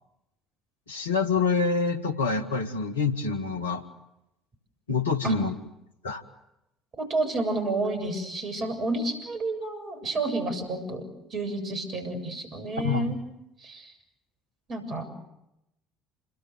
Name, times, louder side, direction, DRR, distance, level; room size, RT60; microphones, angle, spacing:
voice 1, 0.9-3.8 4.9-5.5 6.0-6.2 12.8-13.1, left 4 dB, 80° left, 8 dB, 1.9 m, -26 dB
voice 2, 7.0-11.1 11.3-13.2 13.6-13.9 14.7-15.1, right 2 dB, 40° right, 7 dB, 7.3 m, -30 dB
28.5 x 23.5 x 8.0 m, 0.87 s
figure-of-eight pair, 55°, 0 cm